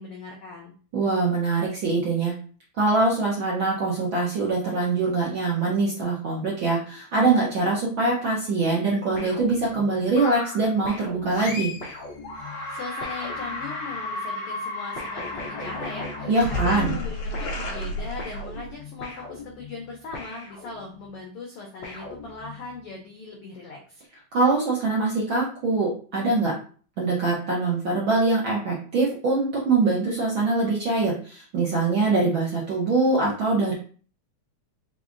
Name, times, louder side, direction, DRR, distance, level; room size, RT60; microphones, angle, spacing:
voice 1, 0.0-0.7 12.4-24.0, left 3 dB, 90° left, 0 dB, 1.2 m, -39 dB
voice 2, 0.9-2.3 2.8-11.7 16.3-17.0 24.3-26.5 27.0-33.7, right 3 dB, 65° right, -5 dB, 1.2 m, -23 dB
sound 1, 9.1-10.1 10.8-14.0 15.0-17.1 17.3-21.1 21.8-22.8, left 3 dB, 50° left, 1.5 m, -40 dB
sound 2, 10.2-10.7 11.3-11.9 12.2-18.7, left 1 dB, 70° left, 2.1 m, -33 dB
4.8 x 3.6 x 2.5 m, 0.42 s
omnidirectional pair, 3.5 m